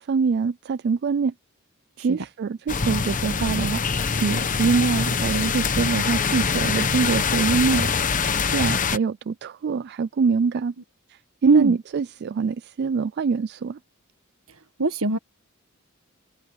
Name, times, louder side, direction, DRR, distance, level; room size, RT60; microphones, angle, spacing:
voice 1, 0.0-1.3 2.0-3.8 4.2-7.9 8.5-10.7 11.1-13.8, right 5 dB, 50° right, 0.3 m, -24 dB
sound 1, 2.7-9.0, left 5 dB, 35° left, 0.9 m, -24 dB
voice 2, 14.8-15.2, right 3 dB, 75° right, 1.7 m, -20 dB
head